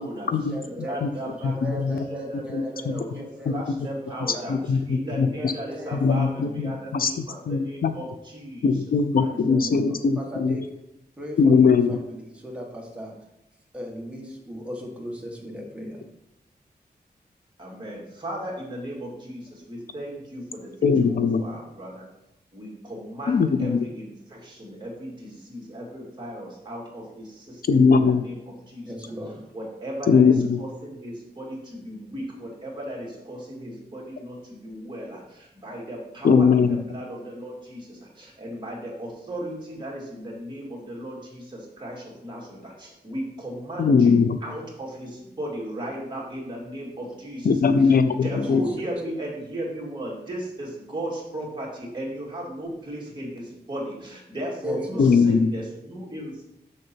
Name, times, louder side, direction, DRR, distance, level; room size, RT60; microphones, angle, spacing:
voice 1, 0.0-1.0 1.4-3.6 4.0-4.5 5.0-6.9 9.3-10.7 11.2-13.1 13.7-16.1 28.8-29.5 47.7-47.9 48.4-48.8 54.6-55.2, equal, 5° right, -2 dB, 1.5 m, -37 dB
voice 2, 0.7-4.5 4.9-8.7 9.2-9.3 17.6-22.0 22.5-28.4 28.7-28.9 29.5-30.3 30.6-47.7 48.2-56.4, right 1 dB, 30° right, -4 dB, 2.3 m, -36 dB
voice 3, 1.4-2.1 2.5-3.0 3.5-3.6 4.5-5.5 5.9-8.0 8.6-10.6 11.4-12.0 20.8-21.4 23.3-23.8 27.7-28.2 30.1-30.6 36.2-36.8 43.8-44.4 47.4-48.6 55.0-55.5, left 5 dB, 60° left, 10 dB, 0.5 m, -20 dB
6.6 x 6.4 x 4.4 m, 0.87 s
wide cardioid pair, 145°, 17 cm